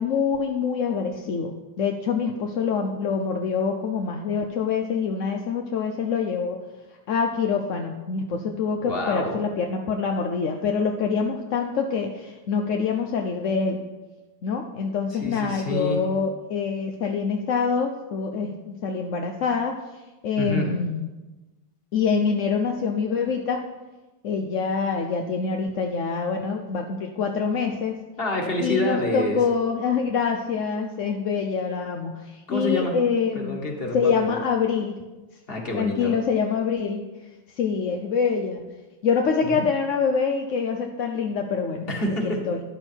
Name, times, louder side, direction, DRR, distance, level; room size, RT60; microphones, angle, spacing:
voice 1, 0.0-1.5 1.8-6.6 7.1-13.8 14.4-19.8 20.2-21.1 21.9-23.6 24.2-28.0 28.6-33.6 33.9-35.0 35.7-37.1 37.6-38.6 39.0-41.9 42.2-42.6, left 5 dB, 55° left, 3 dB, 0.9 m, -25 dB
voice 2, 8.8-9.3 15.2-16.0 20.4-20.7 28.2-29.4 32.5-33.0 33.3-34.0 35.5-36.1 39.5-39.6 41.9-42.4, left 1 dB, 30° left, 1 dB, 2.0 m, -27 dB
13.5 x 11.0 x 4.5 m, 1.1 s
omnidirectional pair, 2.0 m